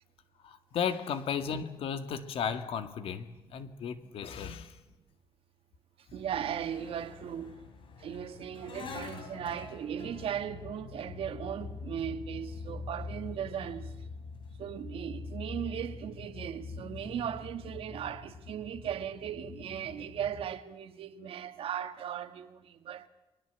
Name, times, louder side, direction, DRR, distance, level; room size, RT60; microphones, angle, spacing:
voice 1, 0.4-4.8, left 7 dB, 90° left, 1.9 m, -35 dB
sound 1, 6.1-20.5, left 4 dB, 65° left, 4.1 m, -44 dB
voice 2, 6.1-7.5 8.0-13.9 14.6-23.1, right 9 dB, 85° right, 1.7 m, -37 dB
29.5 x 21.5 x 8.1 m
wide cardioid pair, 175°, 9 cm